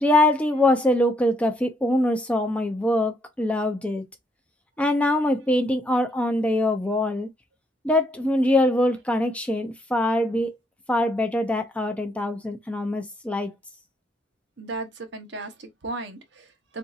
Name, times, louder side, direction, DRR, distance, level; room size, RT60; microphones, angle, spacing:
voice 1, 0.0-4.0 4.8-7.3 7.8-10.5 10.9-13.5, left 1 dB, 5° left, 0.4 m, -23 dB
voice 2, 14.6-16.8, right 2 dB, 60° right, 0.7 m, -36 dB
3.8 x 2.6 x 2.4 m
head